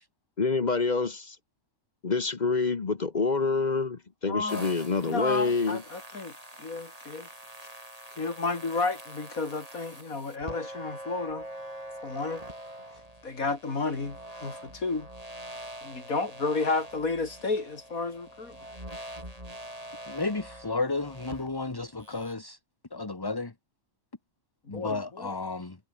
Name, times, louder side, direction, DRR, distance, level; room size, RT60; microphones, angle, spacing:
voice 1, 0.4-1.4 2.0-5.8, left 4 dB, 35° left, 1.0 m, -27 dB
voice 2, 4.3-4.6 5.1-6.3 6.6-7.3 8.2-11.5 12.0-12.4 13.2-15.1 15.8-18.6 24.7-25.4, left 3 dB, 90° left, 3.7 m, -31 dB
sound 1, 4.5-22.3, right 1 dB, 25° right, 7.5 m, -44 dB
voice 3, 20.1-22.6 22.9-23.5 24.7-25.8, left 3 dB, 15° left, 1.2 m, -32 dB
omnidirectional pair, 1.4 m